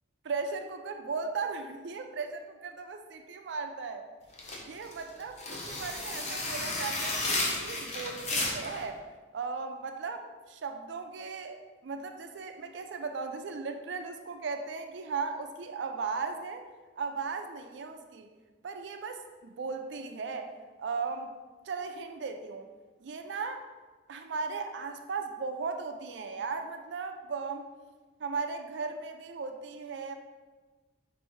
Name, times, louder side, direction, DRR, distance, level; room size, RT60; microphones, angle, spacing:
voice 1, 0.2-4.1 4.7-9.0 9.3-16.6 17.0-18.3 18.6-20.5 20.8-21.4 21.7-22.7 23.0-23.7 24.1-27.6 28.2-30.1, right 4 dB, 80° right, 6 dB, 0.4 m, -37 dB
sound 1, 4.3-8.8, left 2 dB, 40° left, 0.8 m, -33 dB
4.3 x 2.6 x 4.5 m, 1.3 s
head